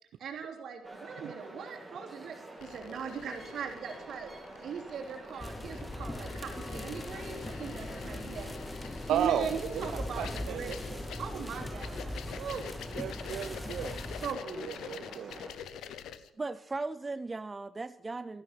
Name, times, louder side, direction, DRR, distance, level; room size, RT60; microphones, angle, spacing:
voice 1, 0.2-4.3 4.6-8.6 9.1-12.7 14.2-14.7, right 6 dB, 65° right, 2 dB, 3.2 m, -40 dB
sound 1, 0.8-15.5, right 1 dB, 10° right, 3.2 m, -48 dB
sound 2, 2.6-16.3, left 9 dB, 80° left, 0.9 m, -47 dB
sound 3, 5.4-14.4, left 2 dB, 20° left, 0.8 m, -40 dB
voice 2, 9.1-9.5 9.7-10.8 12.9-14.0 14.6-15.4, right 9 dB, 80° right, 8 dB, 0.8 m, -33 dB
voice 3, 16.4-18.4, right 3 dB, 25° right, 14 dB, 0.4 m, -37 dB
13.5 x 12.0 x 5.8 m, 0.90 s
cardioid pair, 90°, 0 cm